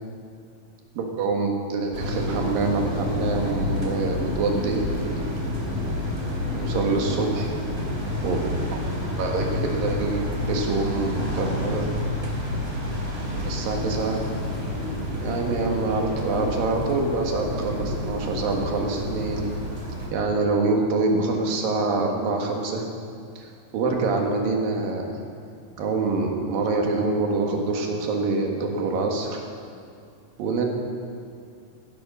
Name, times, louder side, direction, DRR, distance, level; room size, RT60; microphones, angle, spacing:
voice 1, 1.0-4.8 6.5-7.5 8.2-8.4 8.7-8.8 9.2-11.9 13.3-14.2 15.2-19.5 20.1-22.9 23.4-25.2 25.8-29.4 30.4-30.7, right 3 dB, 90° right, 1 dB, 3.4 m, -25 dB
sound 1, 1.9-20.1, left 1 dB, 20° right, 2.5 m, -29 dB
15.5 x 11.0 x 6.2 m, 2.4 s
omnidirectional pair, 3.9 m